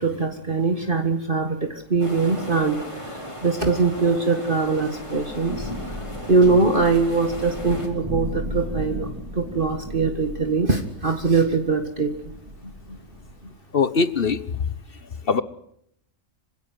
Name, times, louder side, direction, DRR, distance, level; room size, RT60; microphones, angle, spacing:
voice 1, 0.0-2.8 3.4-5.7 6.3-9.1 9.4-12.1, right 4 dB, 40° right, 5 dB, 2.0 m, -22 dB
sound 1, 2.0-7.9, equal, 25° left, 4.6 m, -37 dB
Thunder / Rain, 5.0-13.5, equal, 25° right, 4.3 m, -35 dB
voice 2, 12.6-13.0 13.7-14.4 15.3-15.4, left 5 dB, 50° left, 14 dB, 1.2 m, -22 dB
26.5 x 16.5 x 9.4 m, 0.73 s
omnidirectional pair, 1.3 m